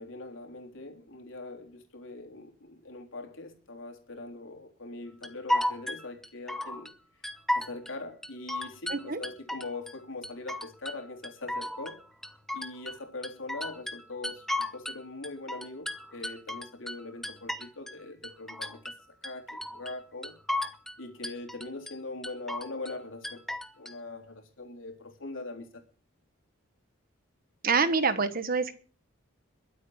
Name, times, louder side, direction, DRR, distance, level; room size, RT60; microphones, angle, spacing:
voice 1, 0.0-6.9 7.5-12.0 12.5-20.4 21.0-23.5 23.8-25.8, left 2 dB, 65° left, 3.5 m, -42 dB
sound 1, 5.2-6.9 7.2-7.9 8.2-9.9 10.2-11.0 11.2-13.0 13.2-15.0 15.2-18.0 18.2-19.0 19.2-20.0 20.2-21.0 21.2-21.9 22.2-23.0 23.2-23.9, left 1 dB, ahead, 0.9 m, -34 dB
voice 2, 8.9-9.2 27.6-28.7, right 4 dB, 45° right, 1.3 m, -26 dB
22.0 x 8.4 x 4.8 m
head